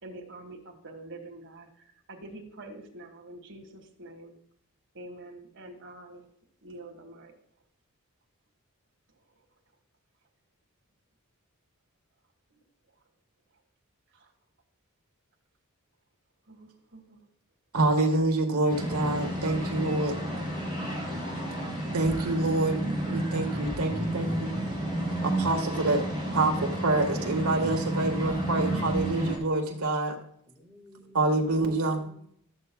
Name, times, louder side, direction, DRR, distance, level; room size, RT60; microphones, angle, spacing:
voice 1, 0.0-4.4 4.9-6.3 6.6-7.3 14.1-14.3 16.5-17.2, right 2 dB, 55° right, 3 dB, 1.7 m, -46 dB
voice 2, 17.7-20.1 21.9-22.8 23.1-24.5 25.2-26.1 26.3-30.2 31.1-32.0, right 2 dB, 80° right, 2 dB, 1.5 m, -26 dB
sound 1, 18.7-29.4, right 1 dB, 40° left, 3.8 m, -31 dB
voice 3, 30.5-32.4, equal, 15° left, 1 dB, 1.7 m, -54 dB
13.0 x 8.0 x 2.3 m, 0.63 s
head